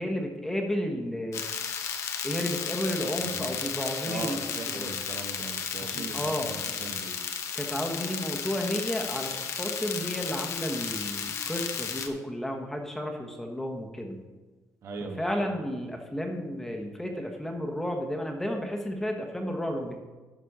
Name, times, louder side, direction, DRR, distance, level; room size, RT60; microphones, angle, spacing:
voice 1, 0.0-1.4 2.2-4.4 4.7-5.0 5.8-6.5 7.5-14.2 15.2-20.0, equal, 5° left, 2 dB, 1.1 m, -32 dB
sound 1, 1.3-12.1, left 7 dB, 55° left, 0.9 m, -34 dB
voice 2, 3.2-3.5 4.0-7.1 14.8-15.5, right 4 dB, 60° right, 3 dB, 1.2 m, -39 dB
11.0 x 4.3 x 6.6 m, 1.3 s
cardioid pair, 140°, 6 cm